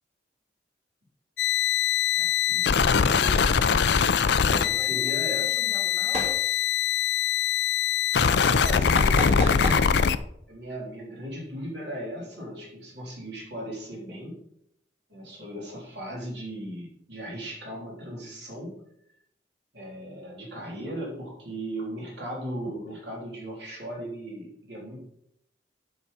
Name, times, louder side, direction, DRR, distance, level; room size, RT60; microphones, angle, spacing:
sound 1, 1.4-10.2, left 7 dB, 65° left, 0.4 m, -23 dB
voice 1, 2.1-3.5 4.1-5.5 8.5-10.0 10.5-14.4 15.1-18.8 19.7-25.0, equal, 65° right, -2 dB, 3.3 m, -37 dB
voice 2, 3.9-6.7, equal, 15° left, 4 dB, 1.3 m, -44 dB
sound 2, 6.1-6.4 9.0-9.8, equal, 35° right, 1.8 m, -32 dB
8.0 x 5.9 x 5.3 m, 0.72 s
head